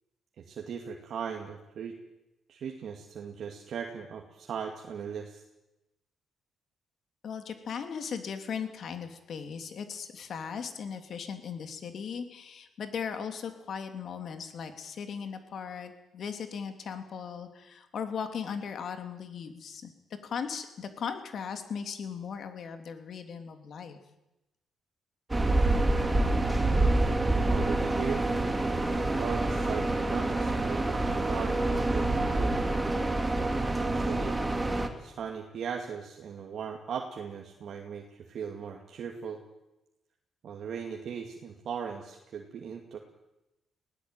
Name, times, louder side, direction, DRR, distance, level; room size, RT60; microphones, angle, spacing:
voice 1, 0.4-1.9 2.5-5.4 27.3-28.3 29.2-32.5 33.7-34.4 35.0-39.4 40.4-43.0, right 7 dB, 60° right, 2 dB, 2.4 m, -38 dB
voice 2, 7.2-19.9 20.2-24.0, left 6 dB, 60° left, 7 dB, 3.1 m, -38 dB
sound 1, 25.3-34.9, right 2 dB, 15° right, 2.9 m, -27 dB
20.5 x 17.0 x 9.2 m, 0.96 s
cardioid pair, 90°, 0 cm